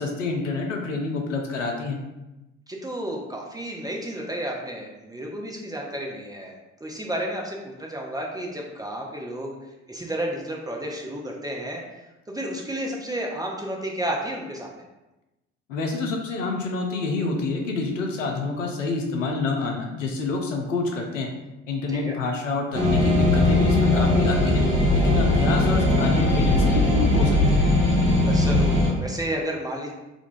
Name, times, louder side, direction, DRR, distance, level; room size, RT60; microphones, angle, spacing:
voice 1, 0.0-2.0 15.7-21.3 21.7-24.6 24.9-27.7, left 3 dB, 85° left, 2 dB, 0.5 m, -27 dB
voice 2, 2.7-9.6 9.9-11.8 12.3-14.8 21.9-22.1 28.3-29.9, right 1 dB, 10° right, -1 dB, 0.4 m, -32 dB
sound 1, 22.7-28.9, left 1 dB, 90° right, 1.2 m, -19 dB
3.7 x 2.2 x 2.4 m, 1.0 s
figure-of-eight pair, 50°, 37 cm